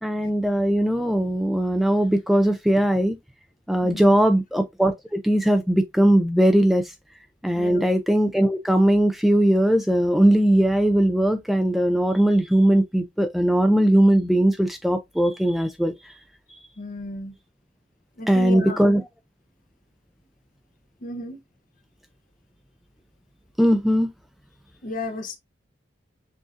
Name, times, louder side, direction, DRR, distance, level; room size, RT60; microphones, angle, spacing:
voice 1, 0.0-3.2 3.7-6.9 7.4-15.9 18.3-19.0 23.6-24.1, right 1 dB, ahead, 0.3 m, -19 dB
voice 2, 3.8-4.2 7.6-7.9 16.8-17.3 18.2-18.8 21.0-21.4 24.8-25.4, left 2 dB, 45° left, 0.8 m, -33 dB
6.0 x 2.6 x 2.4 m
head